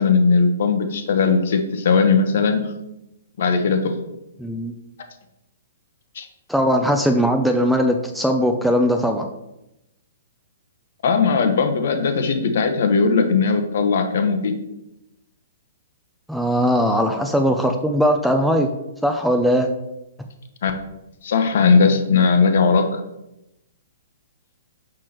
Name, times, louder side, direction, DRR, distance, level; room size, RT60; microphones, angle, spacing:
voice 1, 0.0-2.7 3.4-4.0 6.1-6.3 11.0-14.5 20.6-20.7 21.2-23.0, left 5 dB, 60° left, 6 dB, 0.9 m, -18 dB
voice 2, 4.4-4.7 6.5-9.2 16.3-18.7 19.0-19.7, equal, ahead, 4 dB, 0.3 m, -19 dB
6.4 x 6.1 x 2.9 m, 0.90 s
hypercardioid pair, 165°, 0 cm